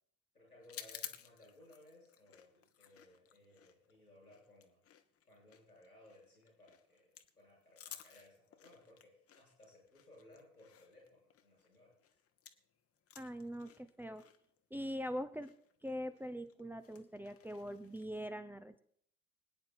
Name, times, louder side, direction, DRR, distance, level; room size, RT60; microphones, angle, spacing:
voice 1, 0.3-4.8 5.3-12.2, left 1 dB, 90° left, -2 dB, 7.9 m, -62 dB
sound 1, 0.6-12.7 13.0-18.3, left 9 dB, 30° left, 1.2 m, -55 dB
voice 2, 13.2-14.2 14.7-15.5 15.8-18.8, equal, 5° right, 8 dB, 0.8 m, -42 dB
24.5 x 9.5 x 4.4 m, 0.65 s
figure-of-eight pair, 65°, 44 cm